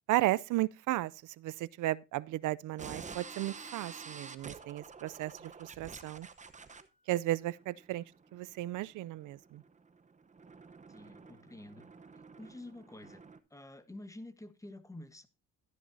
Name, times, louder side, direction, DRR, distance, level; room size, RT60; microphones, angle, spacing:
voice 1, 0.1-6.3 7.1-8.0 8.3-9.6, right 16 dB, 80° right, 0.5 m, -34 dB
sound 1, 2.8-13.4, right 5 dB, 25° right, 0.8 m, -50 dB
voice 2, 10.9-11.9 12.1-13.2 13.5-15.3, left 1 dB, 10° left, 1.1 m, -49 dB
12.5 x 10.0 x 2.7 m
cardioid pair, 90°, 30 cm